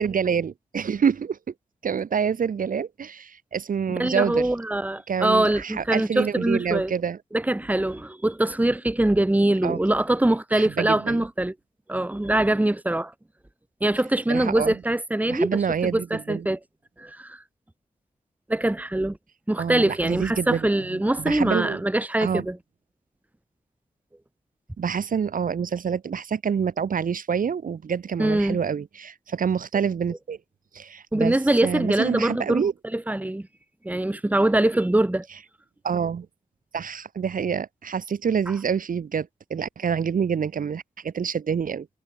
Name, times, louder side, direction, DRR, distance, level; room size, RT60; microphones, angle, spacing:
voice 1, 0.0-1.5 1.8-4.5 5.1-7.2 9.6-9.8 10.5-11.2 14.3-14.8 15.3-16.5 19.6-21.8 22.2-22.5 24.8-30.4 30.7-31.4 31.6-32.7 35.8-36.3 36.7-41.9, right 7 dB, 75° right, 0.7 m, -27 dB
voice 2, 3.9-6.9 7.3-11.5 11.9-13.1 13.8-16.6 17.0-17.4 18.5-19.2 19.5-22.6 28.2-28.6 31.1-32.6 32.9-33.5 33.8-35.3, right 1 dB, 10° right, 0.9 m, -23 dB
wide cardioid pair, 65°, 14 cm